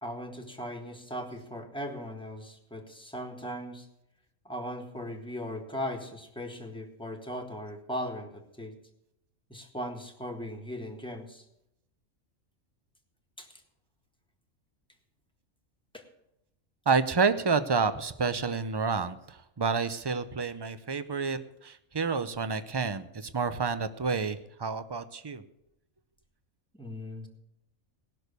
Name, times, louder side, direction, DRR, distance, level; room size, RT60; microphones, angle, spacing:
voice 1, 0.0-3.9 4.4-8.8 9.5-11.4 13.4-13.5 15.9-16.0 26.7-27.3, equal, 5° left, 3 dB, 1.5 m, -38 dB
voice 2, 16.9-25.4, right 5 dB, 35° right, 11 dB, 0.4 m, -29 dB
18.5 x 6.4 x 6.7 m, 0.83 s
omnidirectional pair, 1.3 m